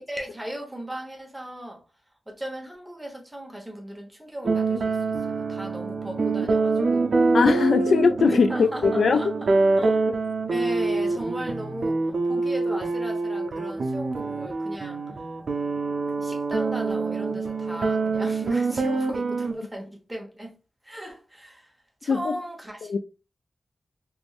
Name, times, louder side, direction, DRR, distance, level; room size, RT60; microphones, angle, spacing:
voice 1, 0.0-1.8 2.3-7.2 8.5-10.2 10.5-15.0 16.2-20.6 20.8-21.7 22.0-23.0, right 1 dB, 10° right, 1.0 m, -37 dB
sound 1, 4.4-19.5, right 3 dB, 65° right, 0.5 m, -25 dB
voice 2, 7.3-9.2 9.8-9.9 22.1-22.3 22.9-23.0, left 5 dB, 80° left, 0.3 m, -21 dB
3.5 x 3.0 x 2.4 m
wide cardioid pair, 145°, 0 cm